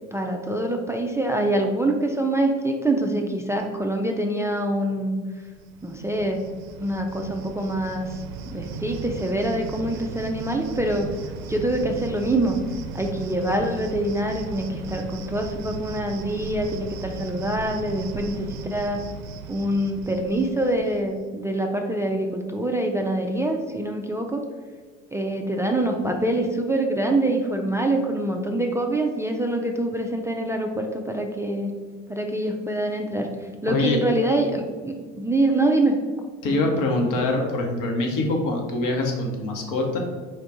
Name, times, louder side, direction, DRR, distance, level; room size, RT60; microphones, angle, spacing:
voice 1, 0.1-5.2 5.8-6.4 6.8-8.1 8.5-11.1 11.5-12.6 12.9-19.0 19.5-24.4 25.1-31.7 32.1-33.3 33.6-36.0 36.5-36.6, right 1 dB, 10° right, 2 dB, 0.3 m, -25 dB
Cricket, 5.5-21.2, right 5 dB, 65° right, 0.5 m, -37 dB
voice 2, 33.7-34.0 36.4-40.0, left 2 dB, 55° left, 1 dB, 1.1 m, -24 dB
4.6 x 2.4 x 4.7 m, 1.5 s
hypercardioid pair, 65°, 38 cm